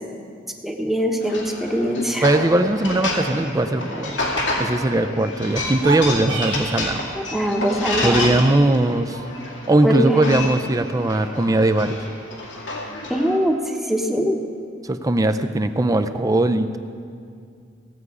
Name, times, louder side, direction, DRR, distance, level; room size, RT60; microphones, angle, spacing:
voice 1, 0.6-2.3 7.1-8.4 9.8-10.2 13.1-14.4, equal, ahead, 2 dB, 1.0 m, -22 dB
sound 1, 1.2-13.4, left 2 dB, 90° left, 2.3 m, -29 dB
voice 2, 2.2-4.2 4.6-7.0 8.0-9.2 9.7-12.0 14.9-16.8, right 2 dB, 20° right, 9 dB, 0.4 m, -19 dB
sound 2, 5.7-6.9, right 4 dB, 85° right, 1.2 m, -29 dB
17.0 x 8.1 x 4.9 m, 2.3 s
head